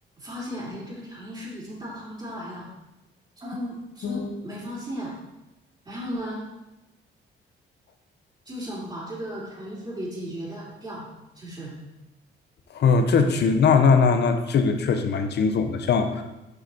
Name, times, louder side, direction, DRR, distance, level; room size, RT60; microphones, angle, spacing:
voice 1, 0.2-2.7 3.4-5.1 5.8-6.4 8.4-11.1 11.3-11.7, equal, 25° right, -9 dB, 2.7 m, -35 dB
voice 2, 12.7-16.2, left 5 dB, 60° left, 7 dB, 0.8 m, -20 dB
6.5 x 5.1 x 4.4 m, 0.99 s
cardioid pair, 90°, 20 cm